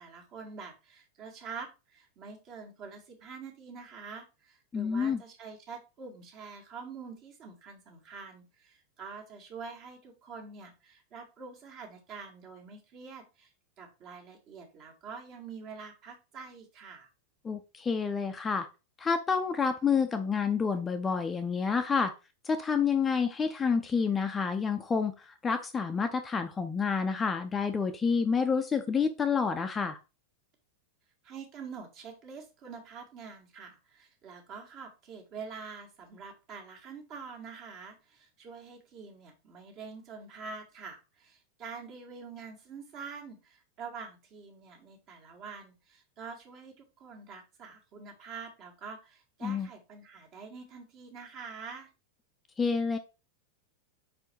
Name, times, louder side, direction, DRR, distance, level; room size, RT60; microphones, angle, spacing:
voice 1, 0.0-13.5 13.8-17.1 31.2-51.9, right 5 dB, 40° right, 1 dB, 2.0 m, -46 dB
voice 2, 4.7-5.2 17.4-18.7 19.0-22.1 22.4-30.0 49.4-49.7 52.6-53.0, left 5 dB, 15° left, 7 dB, 0.6 m, -29 dB
5.2 x 4.5 x 4.6 m, 0.29 s
figure-of-eight pair, 90°, 0 cm